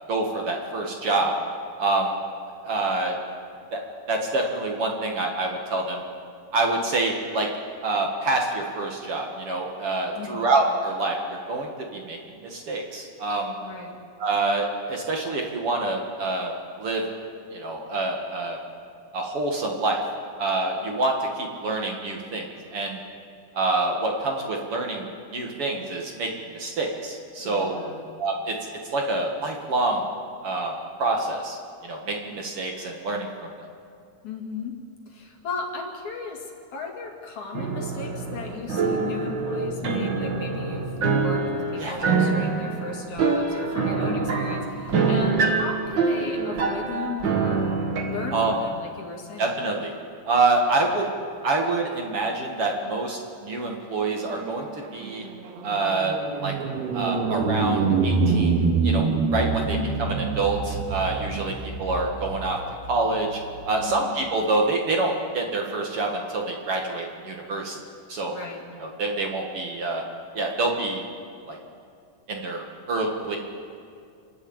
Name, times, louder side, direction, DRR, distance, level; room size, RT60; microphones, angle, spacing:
voice 1, 0.1-1.3 1.8-2.2 2.6-3.1 3.7-3.8 4.1-6.0 6.5-7.5 7.8-13.5 14.2-16.5 16.8-17.1 17.5-18.6 19.1-20.0 20.4-22.4 22.7-23.0 23.5-27.8 28.2-28.6 28.9-30.0 30.4-30.7 31.0-31.6 31.8-33.5 41.8-42.1 48.3-48.5 49.4-49.9 50.3-51.1 51.4-55.2 55.6-56.2 56.4-56.5 56.9-61.5 61.8-62.6 62.9-63.4 63.7-67.8 68.1-68.4 68.8-70.0 70.3-71.0 71.5-71.6 72.3-73.4, right 2 dB, 45° right, 1 dB, 2.1 m, -26 dB
voice 2, 10.1-10.5 13.6-14.0 27.4-28.0 34.2-34.8 35.1-47.7 48.0-49.6 59.7-60.1 63.8-64.1 68.3-68.6, left 4 dB, 50° left, 1 dB, 3.4 m, -36 dB
sound 1, 37.5-48.5, right 4 dB, 60° right, 1.1 m, -25 dB
sound 2, 54.4-64.0, right 4 dB, 80° right, 3.5 m, -26 dB
28.5 x 11.5 x 8.9 m, 2.4 s
omnidirectional pair, 4.6 m